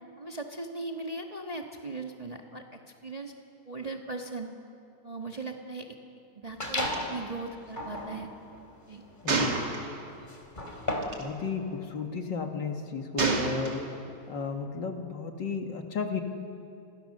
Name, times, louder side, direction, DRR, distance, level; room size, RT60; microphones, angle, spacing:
voice 1, 0.2-3.3 3.6-4.5 5.0-5.9 6.3-8.3 8.9-9.0, right 3 dB, 20° right, 2 dB, 1.4 m, -38 dB
sound 1, 6.6-7.2 7.7-11.3, left 1 dB, 20° left, 3.3 m, -35 dB
Gunshot gunfire, 6.9-7.0 7.3-7.5 9.3-10.2 11.0-11.2 13.2-14.1, right 3 dB, 55° right, 3.3 m, -29 dB
voice 2, 9.2-9.6 11.2-14.0 14.3-16.2, left 5 dB, 60° left, 4 dB, 2.5 m, -33 dB
30.0 x 23.5 x 6.7 m, 2.7 s
omnidirectional pair, 2.3 m